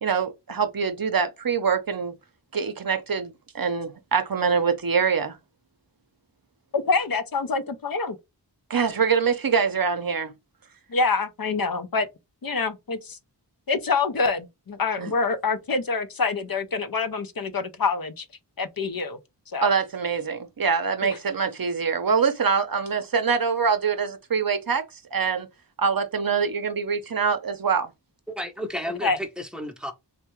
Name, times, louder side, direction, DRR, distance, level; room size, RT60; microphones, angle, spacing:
voice 1, 0.0-2.1 2.5-5.4 8.7-10.3 15.0-15.1 19.6-24.8 25.1-25.5 25.8-27.9, right 6 dB, 55° right, 0.6 m, -24 dB
voice 2, 6.7-8.2 10.9-12.1 12.4-13.2 13.7-18.2 18.6-19.2 19.5-19.7 21.0-21.2 29.0-29.2, left 4 dB, 55° left, 0.6 m, -26 dB
voice 3, 28.3-29.9, equal, ahead, 0.7 m, -32 dB
3.3 x 2.1 x 3.0 m
wide cardioid pair, 55°, 42 cm